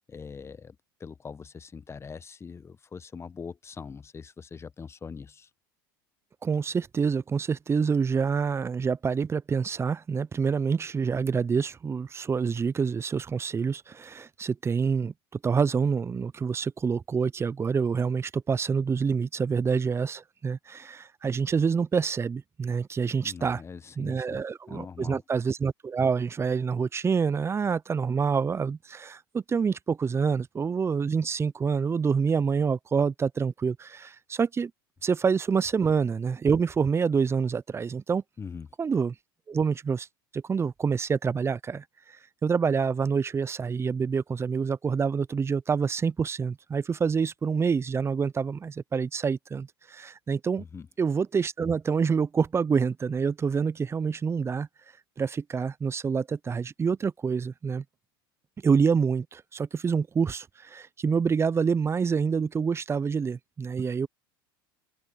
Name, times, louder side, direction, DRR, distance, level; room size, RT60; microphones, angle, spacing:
voice 1, 0.1-5.5 23.2-24.4 24.7-25.2 38.4-38.7 50.6-50.9, left 5 dB, 20° left, 1.2 m, -42 dB
voice 2, 6.4-15.1 15.4-23.6 24.0-34.7 35.0-38.2 38.8-39.1 39.5-40.1 40.3-41.8 42.4-50.6 51.0-54.7 55.2-57.8 58.6-64.1, right 5 dB, 20° right, 0.8 m, -27 dB
hypercardioid pair, 80°, 12 cm